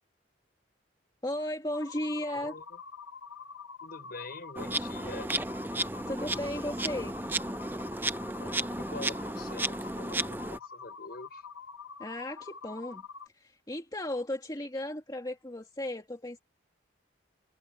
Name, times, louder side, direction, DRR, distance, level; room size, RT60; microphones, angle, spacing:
voice 1, 1.2-2.5 6.1-7.2 12.0-13.1 13.3-16.4, left 1 dB, 20° left, 2.3 m, -35 dB
sound 1, 1.7-13.3, left 6 dB, 80° left, 1.1 m, -46 dB
voice 2, 2.3-2.8 3.8-5.3 8.4-11.4, left 2 dB, 50° left, 6.1 m, -45 dB
Insect, 4.6-10.6, right 2 dB, 10° right, 0.6 m, -34 dB
head